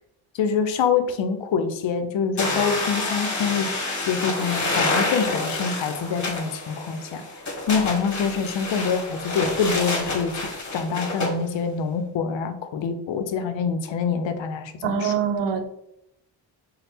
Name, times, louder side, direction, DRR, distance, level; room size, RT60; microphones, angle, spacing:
voice 1, 0.3-3.7 4.1-7.2 7.7-10.5 10.7-15.1, left 6 dB, 65° left, 0.6 m, -25 dB
sound 1, 2.4-11.3, left 2 dB, 35° left, 1.1 m, -28 dB
voice 2, 14.8-15.7, right 6 dB, 60° right, 0.6 m, -24 dB
3.3 x 2.1 x 4.2 m
supercardioid pair, 45°, 49 cm